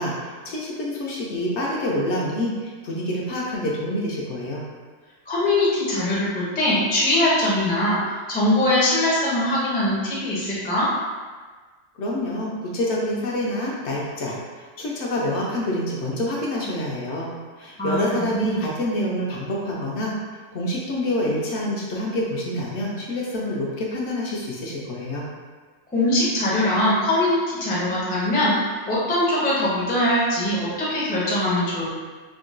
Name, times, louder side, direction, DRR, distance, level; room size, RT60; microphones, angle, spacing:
voice 1, 0.0-4.6 12.0-17.3 17.6-20.1 20.5-25.2, left 1 dB, 65° left, -4 dB, 0.8 m, -27 dB
voice 2, 5.3-8.0 8.3-10.9 17.8-18.0 18.3-18.6 25.9-32.0, left 1 dB, 15° left, -7 dB, 0.4 m, -22 dB
3.6 x 2.2 x 2.5 m, 1.4 s
omnidirectional pair, 1.4 m